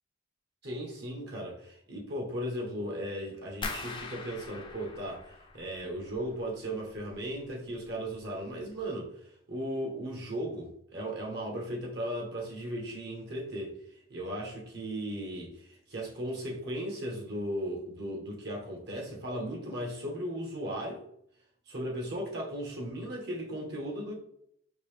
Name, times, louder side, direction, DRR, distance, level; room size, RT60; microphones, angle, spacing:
voice 1, 0.6-9.1 9.5-13.7 14.1-21.1 21.7-24.1, equal, 55° right, -1 dB, 1.1 m, -36 dB
sound 1, 3.6-6.5 6.8-7.5 7.8-8.2 8.7-8.8, left 3 dB, 25° left, 0.5 m, -42 dB
5.2 x 2.8 x 3.3 m, 0.70 s
head